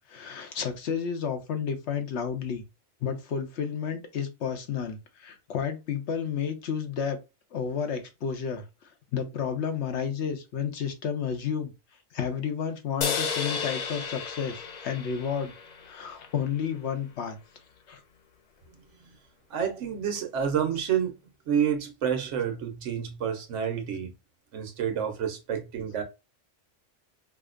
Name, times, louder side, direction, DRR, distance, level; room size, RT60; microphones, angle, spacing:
voice 1, 0.1-2.6 3.0-7.2 7.5-11.7 12.1-15.5 15.8-17.4 17.9-18.0, left 7 dB, 70° left, 1.1 m, -31 dB
sound 1, 13.0-16.5, left 5 dB, 50° left, 0.5 m, -33 dB
voice 2, 19.5-21.2 21.5-24.1 24.5-26.0, right 8 dB, 75° right, 1.1 m, -29 dB
5.0 x 2.1 x 2.4 m
omnidirectional pair, 1.2 m